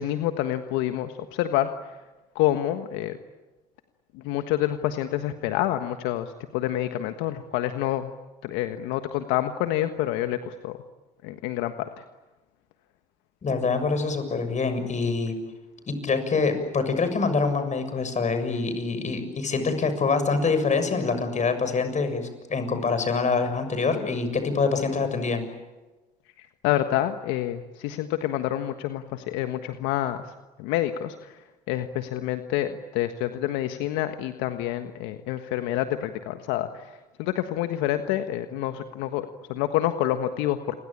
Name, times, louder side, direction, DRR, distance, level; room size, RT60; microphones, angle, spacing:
voice 1, 0.0-1.7 2.3-3.2 4.1-8.1 8.4-10.8 11.2-12.0 26.4-30.2 30.6-31.3 31.7-36.8 37.2-40.8, left 13 dB, 75° left, 8 dB, 1.4 m, -28 dB
voice 2, 13.4-15.3 15.9-25.4, left 4 dB, 40° left, 9 dB, 6.9 m, -25 dB
29.0 x 23.0 x 8.8 m, 1.1 s
hypercardioid pair, 65°, 19 cm